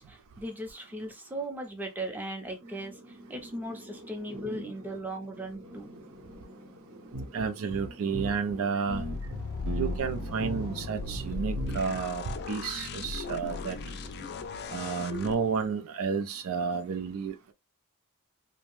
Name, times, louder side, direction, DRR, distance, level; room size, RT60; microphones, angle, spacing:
voice 1, 0.0-5.9, right 1 dB, 10° right, 0.5 m, -38 dB
sound 1, 2.6-15.1, equal, 40° right, 0.8 m, -48 dB
sound 2, 7.1-8.6 8.9-10.1 10.4-10.9 11.2-12.0 12.3-12.4, right 1 dB, 80° right, 0.7 m, -37 dB
voice 2, 7.3-9.0 9.8-13.8 14.7-17.5, right 5 dB, 65° right, 0.4 m, -31 dB
sound 3, 8.9-15.4, left 3 dB, 50° left, 0.3 m, -37 dB
2.6 x 2.0 x 3.0 m
head